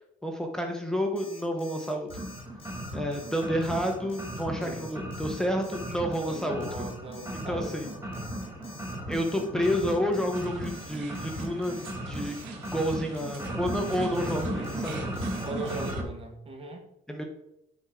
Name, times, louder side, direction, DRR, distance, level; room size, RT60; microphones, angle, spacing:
voice 1, 0.2-2.1 2.9-6.7 7.3-7.9 9.1-12.4 12.7-15.1 17.1-17.2, equal, 5° left, 2 dB, 0.9 m, -30 dB
Alarm, 1.2-15.9, left 3 dB, 30° left, 2.8 m, -50 dB
sound 1, 2.1-16.0, right 1 dB, 15° right, 2.2 m, -36 dB
voice 2, 6.2-8.4 15.4-16.9, right 2 dB, 35° right, 4 dB, 1.5 m, -39 dB
sound 2, 10.3-16.0, right 8 dB, 85° right, 1.1 m, -49 dB
9.5 x 4.5 x 3.7 m, 0.84 s
cardioid pair, 110°, 17 cm